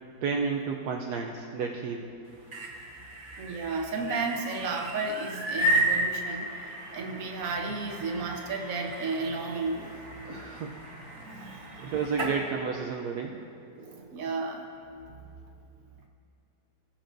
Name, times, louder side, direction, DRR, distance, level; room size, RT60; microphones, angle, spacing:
voice 1, 0.2-2.1 10.3-10.8 11.8-13.4, right 5 dB, 75° right, 1 dB, 1.1 m, -31 dB
sound 1, 2.3-12.4, right 1 dB, 35° right, 1.1 m, -33 dB
voice 2, 3.4-10.0 11.2-11.9 13.7-14.6 15.1-15.3, right 3 dB, 55° right, 2 dB, 1.3 m, -33 dB
21.0 x 7.5 x 2.6 m, 2.6 s
omnidirectional pair, 1.9 m